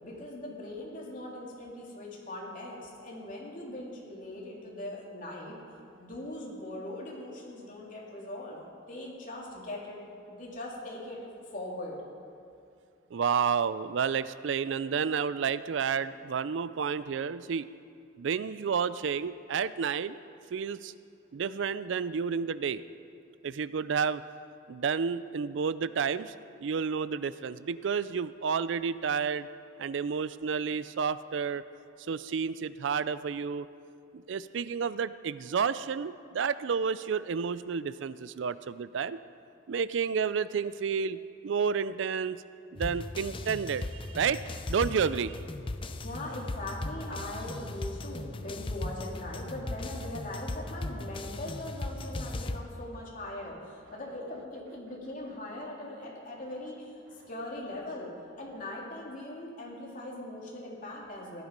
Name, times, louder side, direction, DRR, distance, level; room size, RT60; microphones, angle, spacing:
voice 1, 0.0-5.6 6.0-8.6 8.9-10.0 10.3-12.0 45.9-58.1 58.4-61.4, left 1 dB, 40° left, -3 dB, 2.9 m, -40 dB
voice 2, 13.1-17.7 18.2-20.2 20.5-20.9 21.3-22.8 23.4-24.2 24.7-26.3 26.6-29.5 29.8-31.6 32.1-33.7 34.1-39.2 39.7-42.4 42.7-45.3, right 6 dB, 70° right, 15 dB, 0.4 m, -30 dB
sound 1, 42.8-52.6, left 2 dB, 25° left, 0.6 m, -38 dB
17.0 x 11.0 x 5.3 m, 2.4 s
head